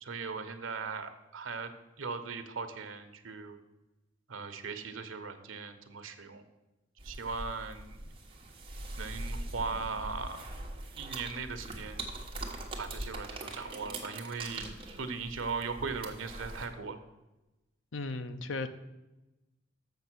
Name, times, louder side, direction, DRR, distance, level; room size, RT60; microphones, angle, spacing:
voice 1, 0.0-3.6 4.3-6.4 7.0-8.1 9.0-10.4 10.9-12.0 12.8-17.0, right 4 dB, 85° right, 8 dB, 0.9 m, -39 dB
sound 1, 7.0-16.7, right 2 dB, 25° right, 1.2 m, -42 dB
voice 2, 17.9-18.7, left 3 dB, 75° left, 10 dB, 0.6 m, -35 dB
7.0 x 6.5 x 6.2 m, 1.0 s
head